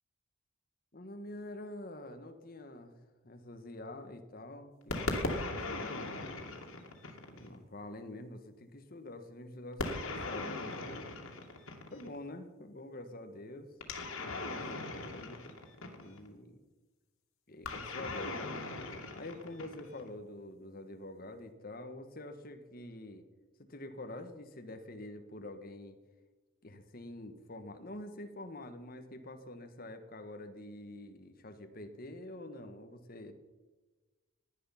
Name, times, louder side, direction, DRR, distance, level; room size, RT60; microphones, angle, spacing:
voice 1, 0.9-3.0 3.2-6.4 7.3-11.1 11.9-13.7 14.4-15.4 16.0-16.6 17.5-18.6 19.1-23.2 23.6-26.0 26.6-33.3, left 1 dB, 45° left, 7 dB, 1.4 m, -46 dB
sound 1, 4.9-7.6 9.8-12.2 13.8-16.3 17.6-20.1, left 2 dB, 90° left, 2.5 m, -39 dB
17.5 x 11.0 x 5.8 m, 1.2 s
head